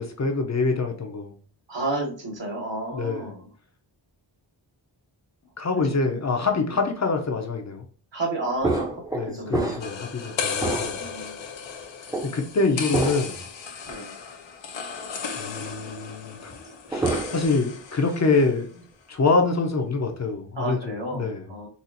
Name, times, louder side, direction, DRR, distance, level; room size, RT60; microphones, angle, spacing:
voice 1, 0.0-1.3 2.9-3.3 5.6-7.8 9.1-11.0 12.2-13.4 15.4-16.5 16.9-18.8 19.1-21.4, left 3 dB, 40° left, 4 dB, 0.6 m, -25 dB
voice 2, 1.7-3.5 6.0-6.2 8.1-9.5 11.0-11.4 13.9-14.1 20.6-21.7, right 2 dB, 70° right, -2 dB, 1.5 m, -31 dB
sound 1, 8.6-10.1 10.5-11.2 12.1-12.3 12.9-13.4 13.9-14.0 16.6-17.6 17.9-18.3, right 2 dB, 10° right, 0.6 m, -28 dB
sound 2, 9.8-18.5, left 6 dB, 80° left, 0.7 m, -35 dB
4.1 x 2.4 x 2.6 m, 0.40 s
wide cardioid pair, 110°, 45 cm